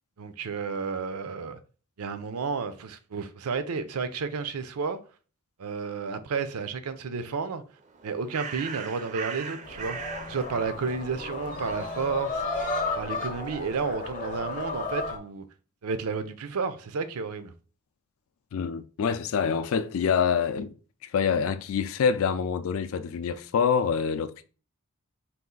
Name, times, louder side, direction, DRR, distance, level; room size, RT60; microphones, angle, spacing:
voice 1, 0.2-1.6 2.0-5.0 5.6-7.6 8.0-10.0 10.3-12.4 13.0-15.4 15.8-17.5, right 5 dB, 85° right, 0.5 m, -31 dB
Bird, 7.8-13.9, right 5 dB, 35° right, 0.4 m, -41 dB
sound 1, 9.6-15.2, left 3 dB, 35° left, 0.7 m, -33 dB
voice 2, 18.5-20.7 21.0-24.4, left 6 dB, 65° left, 0.3 m, -26 dB
4.1 x 2.4 x 3.8 m
head